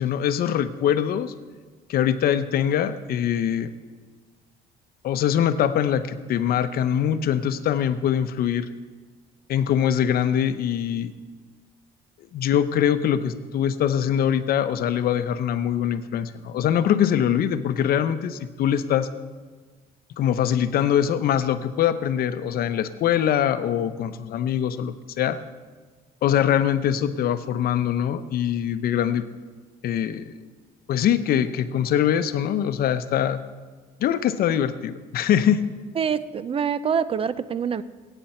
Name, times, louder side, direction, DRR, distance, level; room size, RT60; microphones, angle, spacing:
voice 1, 0.0-1.3 1.9-3.7 5.0-8.7 9.5-11.1 12.3-19.1 20.2-25.4 26.2-29.2 29.8-30.4 30.9-33.4 34.0-35.6, left 9 dB, 60° left, 11 dB, 0.8 m, -23 dB
voice 2, 36.0-37.8, right 7 dB, 35° right, 16 dB, 0.5 m, -25 dB
20.5 x 9.2 x 4.4 m, 1.4 s
cardioid pair, 110°, 17 cm